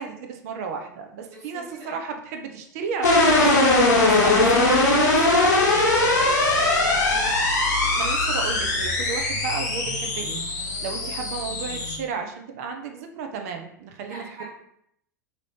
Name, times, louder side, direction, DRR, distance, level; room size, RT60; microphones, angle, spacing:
voice 1, 0.0-5.1 7.9-14.4, right 5 dB, 50° right, 4 dB, 0.5 m, -34 dB
voice 2, 1.5-2.0 4.0-7.4 10.8-11.0 14.0-14.4, right 1 dB, 35° right, -9 dB, 1.2 m, -40 dB
sound 1, 3.0-12.0, left 2 dB, 65° left, 0.8 m, -20 dB
2.8 x 2.6 x 3.2 m, 0.72 s
figure-of-eight pair, 90°, 10 cm